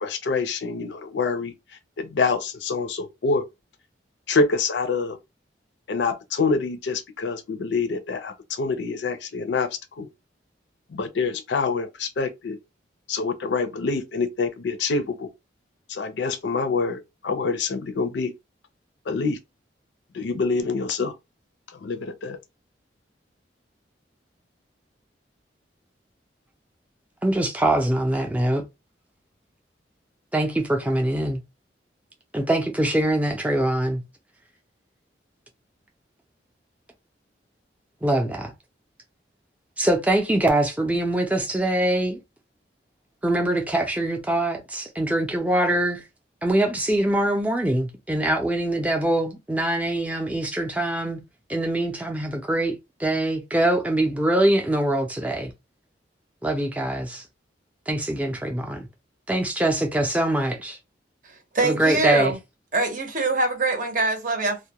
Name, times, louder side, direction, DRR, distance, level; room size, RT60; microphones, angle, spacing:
voice 1, 0.0-1.5 2.0-3.4 4.3-5.2 5.9-10.1 10.9-12.6 13.1-15.3 15.9-18.3 19.1-19.4 20.1-21.1 21.7-22.4, left 4 dB, 75° left, 0.5 m, -26 dB
voice 2, 27.2-28.6 30.3-31.4 32.3-34.0 38.0-38.5 39.8-42.2 43.2-46.0 46.4-51.2 51.5-55.5 56.4-57.2 57.9-58.9 59.3-60.8 61.6-62.3, right 1 dB, 10° right, 0.5 m, -23 dB
voice 3, 61.2-62.4 62.7-64.6, right 3 dB, 45° right, 0.7 m, -24 dB
2.3 x 2.1 x 2.8 m
head